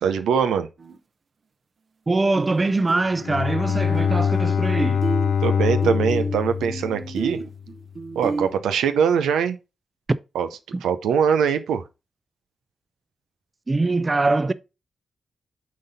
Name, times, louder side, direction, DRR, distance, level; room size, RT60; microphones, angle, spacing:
voice 1, 0.0-0.7 5.4-7.4 8.2-9.6 10.3-10.5 10.8-11.8, right 7 dB, 90° right, 0.5 m, -22 dB
sound 1, 0.8-1.0 2.4-2.6 2.9-4.7 5.0-8.5, right 3 dB, 55° right, 0.9 m, -32 dB
voice 2, 2.1-5.0 10.1-10.2 10.7-10.8 13.7-14.5, right 3 dB, 35° right, 0.6 m, -22 dB
Bowed string instrument, 3.1-7.6, left 7 dB, 75° left, 0.7 m, -24 dB
7.5 x 4.0 x 4.0 m
supercardioid pair, 40°, 0 cm